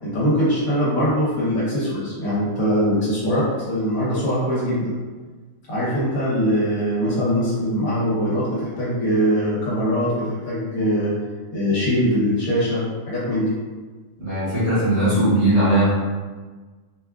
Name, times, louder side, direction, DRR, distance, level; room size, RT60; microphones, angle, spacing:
voice 1, 0.0-4.9 5.7-11.1 11.5-13.5, equal, 85° left, -8 dB, 1.8 m, -22 dB
voice 2, 14.2-15.9, right 1 dB, 55° right, -9 dB, 1.8 m, -19 dB
4.7 x 2.4 x 2.5 m, 1.4 s
omnidirectional pair, 1.4 m